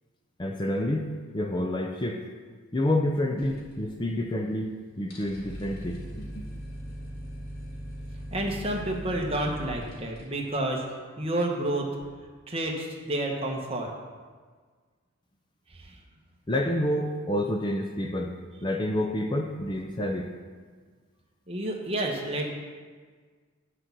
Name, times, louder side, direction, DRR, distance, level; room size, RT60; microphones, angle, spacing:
voice 1, 0.4-1.1 1.3-2.2 2.7-4.7 5.0-6.4 16.5-18.3 18.6-20.3, left 1 dB, 20° left, 2 dB, 0.5 m, -28 dB
sound 1, 3.4-4.4 4.6-4.7 5.0-10.2, equal, 50° left, 2.0 m, -40 dB
voice 2, 8.3-10.8 11.2-11.9 12.5-13.9 15.8-15.9 21.5-22.4, right 1 dB, 25° right, 0 dB, 1.3 m, -29 dB
9.4 x 6.4 x 6.0 m, 1.5 s
head